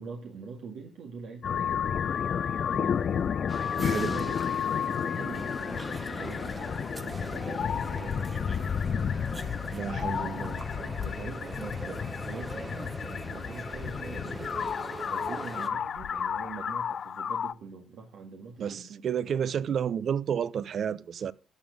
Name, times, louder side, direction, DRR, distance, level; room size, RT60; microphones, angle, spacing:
voice 1, 0.0-3.2 3.7-5.5 6.1-6.6 7.0-8.5 10.7-19.5, right 5 dB, 75° right, 1.9 m, -44 dB
sound 1, 1.4-17.5, left 7 dB, 55° left, 0.4 m, -31 dB
sound 2, 1.7-16.7, equal, 25° left, 1.3 m, -61 dB
sound 3, 3.5-15.7, right 3 dB, 25° right, 0.9 m, -41 dB
voice 2, 3.8-4.2 9.7-10.6 18.6-21.3, right 8 dB, 60° right, 0.6 m, -31 dB
13.0 x 7.1 x 5.1 m
cardioid pair, 90°, 0 cm